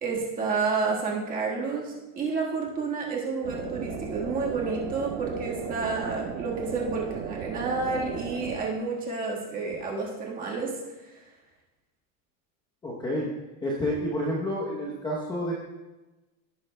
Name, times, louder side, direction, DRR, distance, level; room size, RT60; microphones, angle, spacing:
voice 1, 0.0-10.7 11.1-11.2, right 4 dB, 20° right, -2 dB, 1.5 m, -30 dB
sound 1, 3.4-8.6, right 7 dB, 85° right, 1.9 m, -36 dB
voice 2, 12.8-13.3 13.6-15.5, equal, 10° left, -4 dB, 0.8 m, -29 dB
17.0 x 9.6 x 2.2 m, 1.1 s
supercardioid pair, 170°, 44 cm